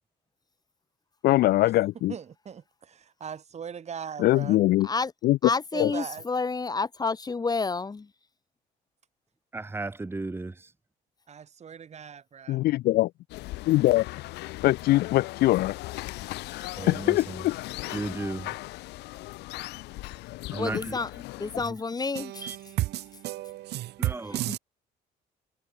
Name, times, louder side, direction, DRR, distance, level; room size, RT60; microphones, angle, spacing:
voice 1, 1.2-2.1 4.2-4.9 5.2-5.5 5.8-5.9 12.5-13.1 13.7-14.0 14.6-15.7 16.5-17.2, left 16 dB, 65° left, 0.4 m, -22 dB
voice 2, 2.1-4.6 5.7-6.3 11.3-12.6, right 7 dB, 40° right, 6.2 m, -40 dB
voice 3, 5.4-8.1 20.6-21.1 21.4-22.5, left 4 dB, 25° left, 2.3 m, -29 dB
voice 4, 9.5-10.7 16.8-17.4 17.9-18.5 20.5-21.2 21.6-21.8 22.4-22.6 24.0-24.4, right 3 dB, 15° right, 1.8 m, -35 dB
sound 1, 13.3-21.7, left 19 dB, 85° left, 2.5 m, -38 dB
voice 5, 22.1-24.6, right 16 dB, 80° right, 5.7 m, -32 dB
cardioid pair, 110°, 17 cm